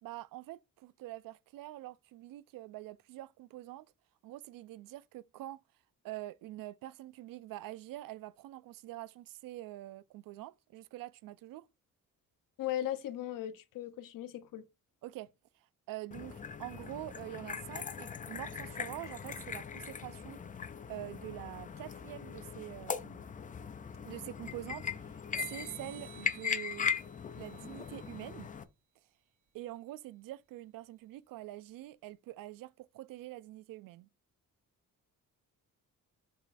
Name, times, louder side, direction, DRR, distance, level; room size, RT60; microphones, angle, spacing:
voice 1, 0.0-3.9 4.2-5.6 6.0-11.7 15.0-15.3 15.9-20.4 20.9-23.2 24.0-27.0 27.3-28.5 29.5-34.1, right 16 dB, 85° right, 0.5 m, -45 dB
voice 2, 12.6-14.6, left 12 dB, 80° left, 0.9 m, -37 dB
sound 1, 16.1-28.6, left 7 dB, 25° left, 0.4 m, -40 dB
sound 2, 25.4-28.5, right 12 dB, 65° right, 1.1 m, -54 dB
7.3 x 5.2 x 2.6 m
cardioid pair, 170°, 33 cm